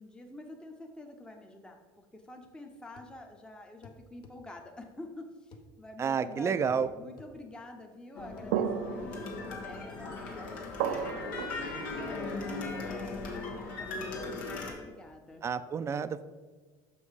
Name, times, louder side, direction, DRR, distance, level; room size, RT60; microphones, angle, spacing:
voice 1, 0.0-11.1 11.9-15.4, left 2 dB, 10° left, 3 dB, 0.7 m, -48 dB
sound 1, 3.0-3.2 3.8-4.4 5.5-5.7 6.7-6.9 7.2-7.3 8.4-8.5, left 5 dB, 45° left, 0.7 m, -53 dB
voice 2, 6.0-6.9 15.4-16.2, right 6 dB, 25° right, 13 dB, 0.4 m, -30 dB
sound 2, 8.2-14.7, left 3 dB, 90° left, 1.4 m, -38 dB
sound 3, 8.5-12.6, right 8 dB, 80° right, 0.5 m, -36 dB
6.2 x 5.3 x 4.8 m, 1.4 s
supercardioid pair, 110°, 10 cm